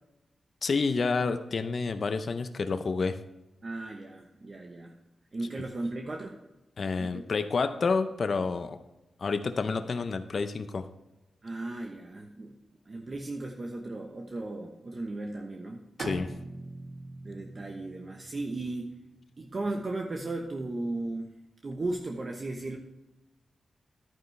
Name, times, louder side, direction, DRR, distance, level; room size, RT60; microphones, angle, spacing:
voice 1, 0.6-3.2 6.8-8.8 9.2-10.9 16.0-16.3, left 4 dB, 55° left, 9 dB, 0.6 m, -29 dB
voice 2, 3.6-4.9 5.3-6.4 7.0-7.2 11.4-12.5 12.9-15.8 17.2-18.9 19.4-21.3 21.6-22.8, right 2 dB, 40° right, 2 dB, 1.0 m, -36 dB
Bowed string instrument, 16.0-19.6, right 2 dB, 70° right, 1.6 m, -42 dB
11.0 x 9.5 x 3.3 m, 0.98 s
wide cardioid pair, 95°, 0 cm